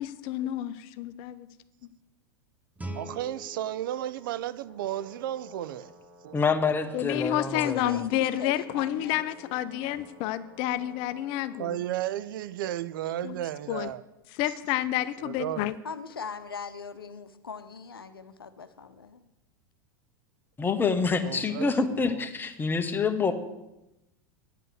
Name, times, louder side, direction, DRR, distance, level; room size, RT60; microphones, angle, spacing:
voice 1, 0.0-1.5 6.9-11.8 13.2-13.4 13.7-13.9 14.4-15.7, left 13 dB, 50° left, 14 dB, 0.6 m, -29 dB
Guitar, 2.8-5.5, right 1 dB, 15° right, 1.0 m, -44 dB
voice 2, 2.9-5.9 6.2-7.3 11.6-14.0 15.2-15.7 21.2-22.3, right 12 dB, 65° right, 17 dB, 0.5 m, -34 dB
Brass instrument, 4.6-11.8, left 1 dB, 90° right, 3.5 m, -54 dB
voice 3, 6.3-8.0 20.6-23.3, left 5 dB, 15° left, 7 dB, 1.0 m, -27 dB
voice 4, 7.5-9.6 15.8-19.2, left 5 dB, 90° left, 9 dB, 0.7 m, -40 dB
9.3 x 5.4 x 7.8 m, 0.94 s
hypercardioid pair, 90°, 12 cm